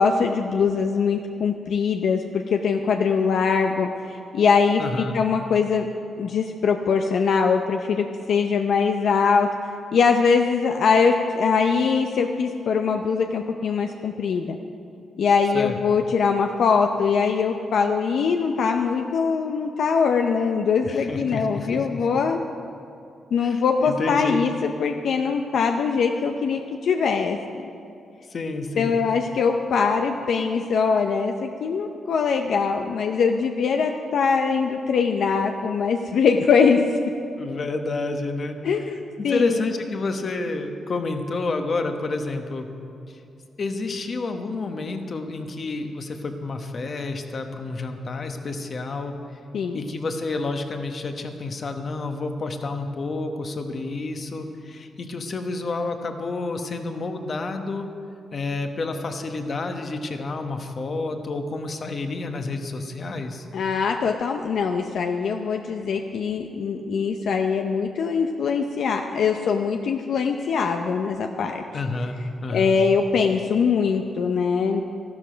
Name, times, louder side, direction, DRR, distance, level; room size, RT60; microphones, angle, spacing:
voice 1, 0.0-5.9 6.2-9.5 9.9-14.6 15.2-22.4 23.3-27.4 28.8-36.8 38.6-39.7 49.5-49.8 63.5-71.6 72.5-74.8, left 5 dB, 70° left, 4 dB, 0.6 m, -22 dB
voice 2, 4.8-5.2 15.5-15.8 20.8-22.2 23.4-24.4 28.3-29.0 37.4-38.5 38.8-38.9 39.2-42.7 43.6-49.2 49.7-57.9 58.3-63.5 71.7-72.8, left 3 dB, 45° left, 6 dB, 1.1 m, -29 dB
13.5 x 12.5 x 5.1 m, 2.6 s
cardioid pair, 100°, 0 cm